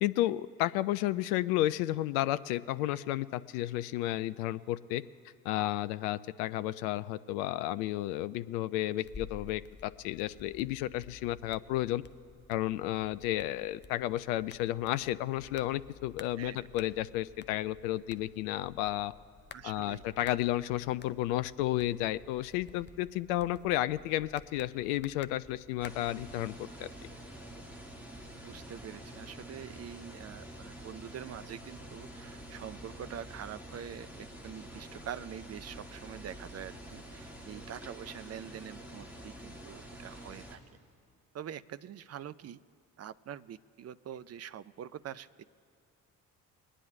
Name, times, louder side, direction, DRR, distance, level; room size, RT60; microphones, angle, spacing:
voice 1, 0.0-5.0 5.4-12.0 12.5-19.1 19.6-26.9, left 15 dB, 70° left, 14 dB, 0.6 m, -32 dB
sound 1, 9.0-25.9, left 5 dB, 25° left, 0.6 m, -53 dB
voice 2, 16.4-16.7 19.5-20.0 28.0-28.1 28.4-40.6 41.3-42.6 43.0-45.4, right 9 dB, 35° right, 14 dB, 0.5 m, -45 dB
sound 2, 25.8-40.6, right 1 dB, 5° right, 2.6 m, -47 dB
23.0 x 9.9 x 2.7 m, 2.4 s
figure-of-eight pair, 45°, 48 cm